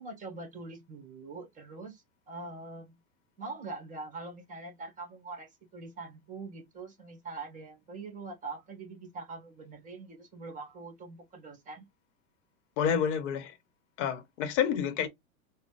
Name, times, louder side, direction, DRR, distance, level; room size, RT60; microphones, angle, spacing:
voice 1, 0.0-3.0 3.4-11.9, right 3 dB, 20° right, 1.6 m, -43 dB
voice 2, 12.8-13.5 14.0-15.1, left 8 dB, 55° left, 1.0 m, -29 dB
4.2 x 2.2 x 3.1 m
supercardioid pair, 140°, 43 cm